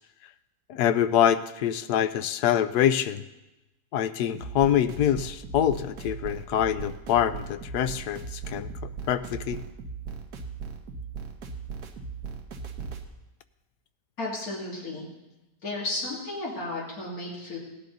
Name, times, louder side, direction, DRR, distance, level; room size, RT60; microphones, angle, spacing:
voice 1, 0.7-3.2 3.9-9.6, left 10 dB, 85° left, 12 dB, 1.2 m, -25 dB
sound 1, 4.3-13.1, right 5 dB, 75° right, 1.6 m, -38 dB
voice 2, 14.2-15.0 15.6-17.6, left 2 dB, 65° left, -5 dB, 3.2 m, -33 dB
17.0 x 10.0 x 4.0 m, 0.99 s
omnidirectional pair, 1.7 m